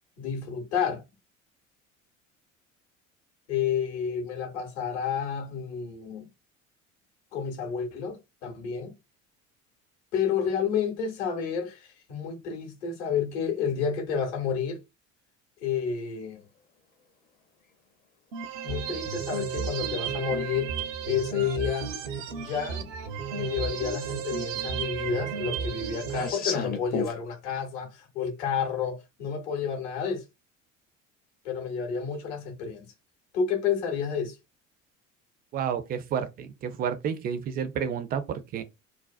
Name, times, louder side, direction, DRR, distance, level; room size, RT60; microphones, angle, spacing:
voice 1, 0.2-1.0 3.5-6.3 7.3-8.9 10.1-14.8 15.6-16.4 18.6-20.8 21.1-21.9 22.4-22.9 23.3-30.2 31.4-32.9 33.3-34.4, left 7 dB, 60° left, 0.9 m, -30 dB
sound 1, 18.3-26.3, right 6 dB, 70° right, 0.6 m, -33 dB
sound 2, 20.6-20.7 22.0-22.1 22.6-22.7 22.9-23.6 23.9-27.2, left 5 dB, 25° left, 0.6 m, -34 dB
voice 2, 35.5-38.6, right 7 dB, 25° right, 0.4 m, -30 dB
2.6 x 2.0 x 2.4 m
figure-of-eight pair, 60°, 39 cm